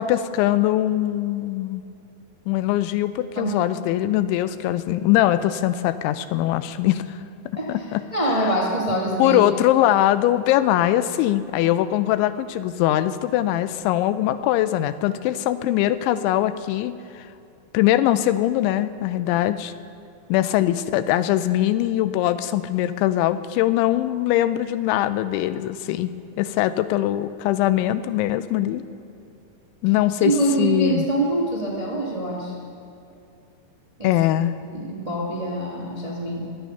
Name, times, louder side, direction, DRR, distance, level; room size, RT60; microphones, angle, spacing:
voice 1, 0.0-1.8 2.5-7.2 7.7-8.0 9.2-17.2 17.7-19.7 20.3-26.1 26.4-28.8 29.8-31.1 34.0-34.5, left 13 dB, 85° left, 12 dB, 2.9 m, -22 dB
voice 2, 7.6-9.4 30.2-32.5 34.0-34.1 34.7-36.5, right 1 dB, 35° right, -4 dB, 0.6 m, -25 dB
23.0 x 9.0 x 5.6 m, 2.7 s
omnidirectional pair, 5.4 m